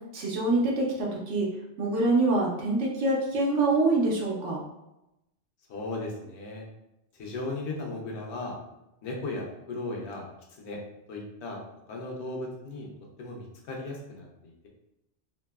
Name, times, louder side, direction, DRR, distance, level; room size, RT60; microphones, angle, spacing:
voice 1, 0.1-1.5 1.8-4.6, right 2 dB, 85° right, -2 dB, 1.0 m, -25 dB
voice 2, 5.7-6.6 7.1-8.6 9.0-10.3 10.6-10.8 11.1-11.6 11.9-12.9 13.2-14.7, left 2 dB, 75° left, -1 dB, 0.9 m, -36 dB
3.1 x 2.7 x 2.2 m, 0.89 s
omnidirectional pair, 1.2 m